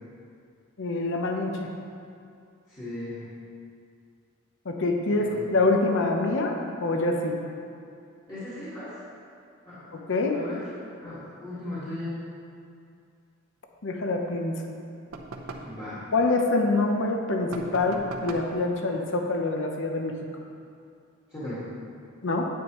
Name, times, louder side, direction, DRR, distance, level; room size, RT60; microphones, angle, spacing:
voice 1, 0.8-1.7 4.7-7.4 9.9-10.4 13.8-14.5 16.1-20.1 22.2-22.5, left 2 dB, 60° left, 2 dB, 0.8 m, -25 dB
voice 2, 2.7-3.2 5.1-5.3 8.3-9.0 9.6-9.9 10.3-10.7 11.0-12.2 15.6-16.0 21.3-21.6, left 1 dB, 20° left, -14 dB, 1.8 m, -37 dB
sound 1, 15.1-15.8 17.5-18.6, right 2 dB, 80° right, 0.8 m, -39 dB
9.6 x 8.8 x 3.1 m, 2.4 s
head